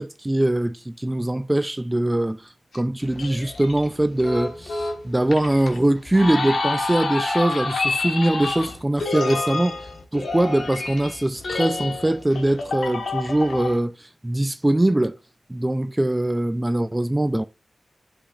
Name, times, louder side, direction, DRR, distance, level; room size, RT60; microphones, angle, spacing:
voice 1, 0.0-15.2 15.5-17.4, right 1 dB, 10° right, 0.3 m, -22 dB
sound 1, 2.7-13.8, left 3 dB, 65° left, 1.4 m, -28 dB
11.5 x 5.2 x 2.4 m
wide cardioid pair, 155°, 0 cm